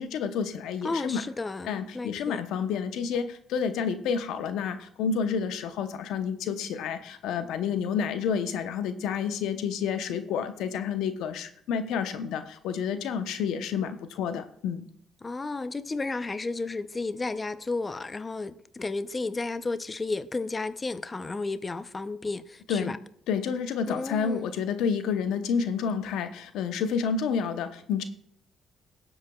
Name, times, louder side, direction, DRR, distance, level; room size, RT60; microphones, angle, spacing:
voice 1, 0.0-1.2 1.6-14.9 22.7-22.9 23.3-28.0, left 6 dB, 80° left, 0.8 m, -29 dB
voice 2, 0.8-2.4 15.2-23.0 23.9-24.5, left 3 dB, 25° left, 0.6 m, -33 dB
17.0 x 7.9 x 2.3 m
supercardioid pair, 75°, 0 cm